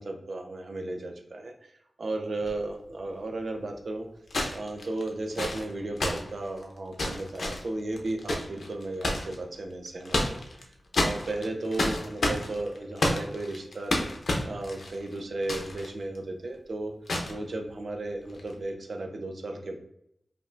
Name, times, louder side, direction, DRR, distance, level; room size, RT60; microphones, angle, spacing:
voice 1, 0.0-1.5 2.0-4.1 4.5-10.4 10.9-14.1 14.5-16.9 17.3-19.8, right 2 dB, 60° right, 3 dB, 0.6 m, -34 dB
sound 1, 2.4-2.5 4.3-9.3 9.9-10.6 10.9-15.9 16.1-16.2 17.1-17.4 18.3-18.5, left 1 dB, 70° left, 0.7 m, -30 dB
5.2 x 2.6 x 2.5 m, 0.75 s
wide cardioid pair, 120°, 0 cm